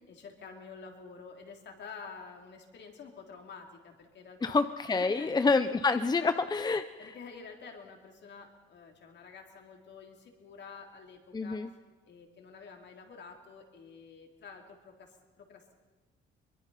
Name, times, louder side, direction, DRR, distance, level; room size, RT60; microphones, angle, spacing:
voice 1, 0.1-4.6 4.9-5.3 6.0-6.3 7.0-11.7 12.1-15.7, left 5 dB, 60° left, 2 dB, 3.5 m, -49 dB
voice 2, 4.4-7.1 11.3-11.7, left 4 dB, 20° left, 11 dB, 0.7 m, -28 dB
23.5 x 21.0 x 5.8 m, 1.3 s
cardioid pair, 90°, 20 cm